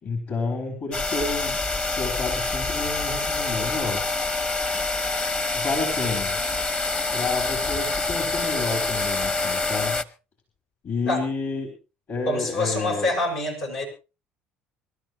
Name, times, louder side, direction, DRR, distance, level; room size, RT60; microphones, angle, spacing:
voice 1, 0.0-1.7 2.0-4.0 5.5-6.4 7.1-10.0 10.8-11.7 12.1-13.1, left 4 dB, 50° left, 4 dB, 4.4 m, -30 dB
sound 1, 0.9-10.0, left 3 dB, 25° left, 1.0 m, -26 dB
voice 2, 12.2-13.9, left 1 dB, 75° left, -1 dB, 7.4 m, -26 dB
24.5 x 13.0 x 3.1 m, 0.31 s
hypercardioid pair, 70°, 5 cm